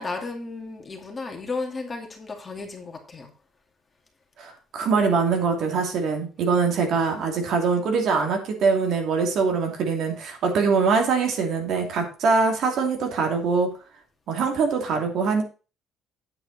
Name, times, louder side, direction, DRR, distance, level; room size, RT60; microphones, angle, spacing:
voice 1, 0.0-3.3, left 3 dB, 25° left, 2 dB, 2.4 m, -34 dB
voice 2, 4.4-13.7 14.3-15.4, right 5 dB, 60° right, 3 dB, 2.7 m, -23 dB
8.9 x 7.9 x 4.2 m, 0.34 s
cardioid pair, 130°, 0 cm